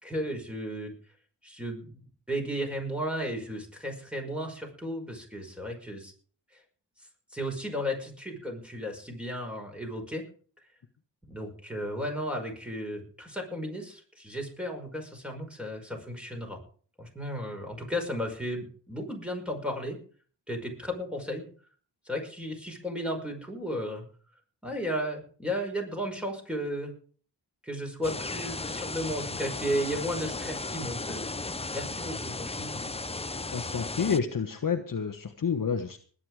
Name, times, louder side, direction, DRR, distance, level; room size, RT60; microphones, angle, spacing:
voice 1, 0.0-0.9 1.4-6.1 6.5-6.6 7.3-10.2 11.3-16.6 17.0-20.0 20.5-21.5 22.1-24.1 24.6-26.9 27.6-31.3 31.7-33.0, equal, 5° right, 2 dB, 5.5 m, -34 dB
sound 1, 28.0-34.2, left 3 dB, 15° left, 0.7 m, -35 dB
voice 2, 33.5-36.0, left 6 dB, 50° left, 7 dB, 1.3 m, -29 dB
20.0 x 9.8 x 4.9 m, 0.44 s
wide cardioid pair, 95°, 43 cm